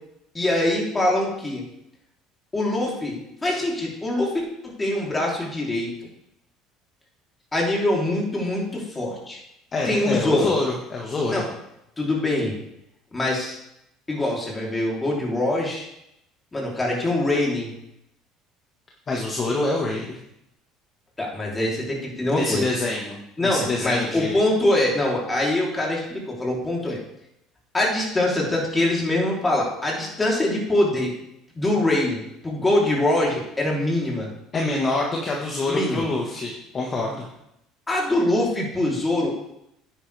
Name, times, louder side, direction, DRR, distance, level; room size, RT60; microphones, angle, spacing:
voice 1, 0.3-1.6 2.5-5.9 7.5-9.4 9.9-10.5 11.3-11.5 12.0-12.5 13.1-13.6 14.1-15.9 16.5-17.7 21.2-22.6 23.4-27.0 27.7-31.1 31.6-34.3 35.7-36.1 37.9-39.3, left 1 dB, 15° left, -3 dB, 3.6 m, -23 dB
voice 2, 9.7-11.5 19.1-20.2 22.3-24.4 34.5-37.3, left 2 dB, 30° left, -1 dB, 1.7 m, -26 dB
10.0 x 9.4 x 3.5 m, 0.81 s
supercardioid pair, 105°, 0 cm